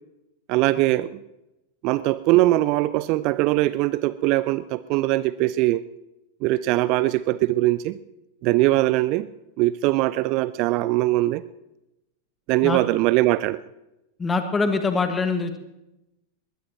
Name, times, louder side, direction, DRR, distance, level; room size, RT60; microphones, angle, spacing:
voice 1, 0.5-1.2 1.8-5.8 6.4-8.0 8.4-9.3 9.6-11.4 12.5-13.6, right 17 dB, 40° right, 18 dB, 0.4 m, -21 dB
voice 2, 14.2-15.6, left 4 dB, 15° left, 7 dB, 1.8 m, -23 dB
21.0 x 20.5 x 3.1 m, 0.93 s
figure-of-eight pair, 90°, 0 cm